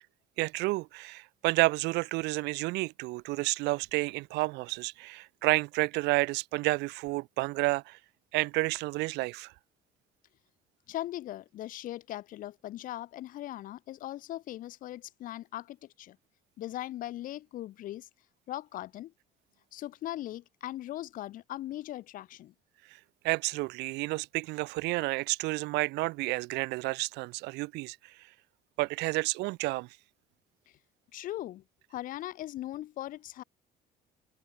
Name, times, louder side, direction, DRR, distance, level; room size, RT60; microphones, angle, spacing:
voice 1, 0.4-8.0 8.3-9.5 23.2-28.0 28.8-29.9, right 22 dB, 85° right, 0.5 m, -30 dB
voice 2, 10.9-16.2 16.6-18.1 18.5-19.1 19.7-22.5 31.1-31.6 31.9-33.4, left 14 dB, 55° left, 0.4 m, -39 dB
open air
cardioid pair, 110°, 17 cm